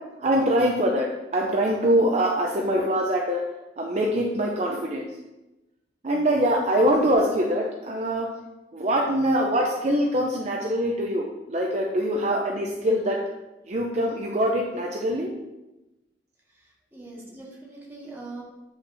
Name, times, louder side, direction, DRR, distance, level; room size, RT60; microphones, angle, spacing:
voice 1, 0.2-3.4 3.8-5.1 6.0-8.3 8.7-13.2 13.7-15.3, equal, 40° right, -1 dB, 0.6 m, -23 dB
voice 2, 16.5-18.4, right 2 dB, 15° right, -4 dB, 1.6 m, -42 dB
8.6 x 5.7 x 2.7 m, 1.0 s
head